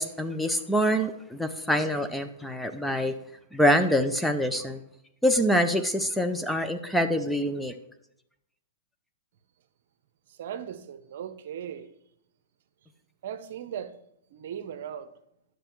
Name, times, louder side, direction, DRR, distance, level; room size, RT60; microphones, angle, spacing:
voice 1, 0.0-3.1 3.5-4.8 5.2-7.7, equal, 5° left, 0.7 m, -25 dB
voice 2, 10.4-11.9 13.2-13.9 14.3-15.1, right 9 dB, 65° right, 0.9 m, -37 dB
10.0 x 6.6 x 4.6 m
hypercardioid pair, 130°, 0 cm